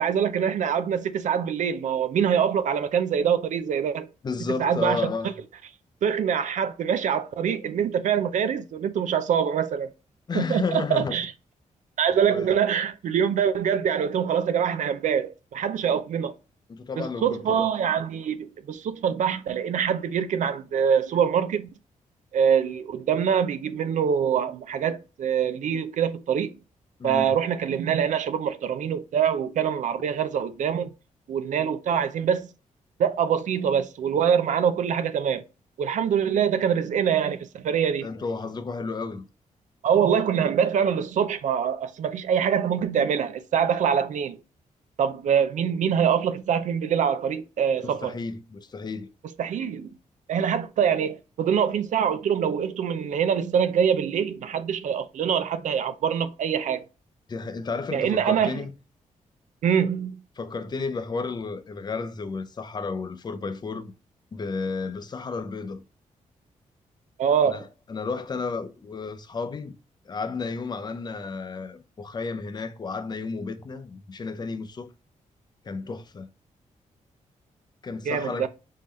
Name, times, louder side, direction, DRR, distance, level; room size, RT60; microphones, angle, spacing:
voice 1, 0.0-4.1 4.6-5.1 6.0-9.9 10.3-11.3 12.0-16.3 17.0-21.7 22.3-26.5 27.0-30.9 31.3-32.5 33.0-35.4 35.8-38.1 39.8-44.4 45.0-48.1 49.4-49.9 50.3-56.8 57.9-58.5 59.6-60.2 67.2-67.6 78.1-78.5, right 8 dB, 70° right, 0.5 m, -24 dB
voice 2, 4.2-5.4 10.3-11.2 12.3-12.7 16.7-17.7 27.0-27.3 38.0-39.2 47.8-49.1 57.3-58.7 60.4-63.9 64.3-65.8 67.4-69.7 70.1-74.9 75.6-76.3 77.8-78.5, left 4 dB, 30° left, 0.6 m, -32 dB
4.1 x 3.8 x 3.1 m
wide cardioid pair, 125°, 13 cm